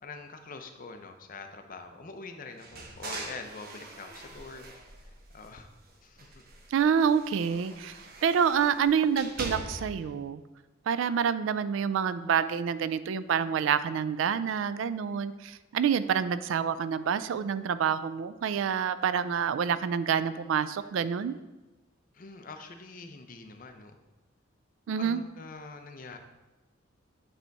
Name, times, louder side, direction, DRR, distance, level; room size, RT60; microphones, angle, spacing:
voice 1, 0.0-4.7 5.3-5.7 6.0-6.4 22.1-24.0 25.0-26.2, left 3 dB, 45° left, 6 dB, 0.6 m, -44 dB
sound 1, 2.6-5.8 6.1-10.1, right 2 dB, 50° right, 0.8 m, -43 dB
voice 2, 6.7-7.9 8.2-10.4 10.9-21.4 24.9-25.2, right 7 dB, 75° right, 14 dB, 0.3 m, -27 dB
8.8 x 3.4 x 4.0 m, 1.1 s
head